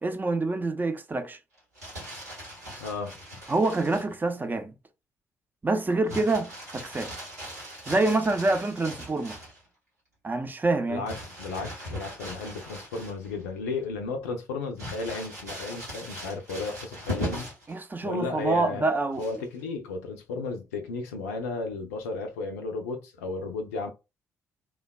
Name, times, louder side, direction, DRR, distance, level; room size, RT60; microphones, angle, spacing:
voice 1, 0.0-1.4 3.5-4.7 5.6-7.1 7.9-9.4 10.2-11.1 17.7-19.2, right 3 dB, 20° right, 0.6 m, -26 dB
Crumpling crinkling, 1.6-4.1 6.1-9.6 11.1-13.4 13.8-13.9 14.8-17.7 19.1-19.6, equal, 90° right, 0.9 m, -39 dB
voice 2, 2.8-3.1 10.9-17.5 18.0-18.8 19.2-23.9, left 3 dB, 75° left, 0.5 m, -34 dB
3.2 x 2.3 x 2.3 m
figure-of-eight pair, 45°, 8 cm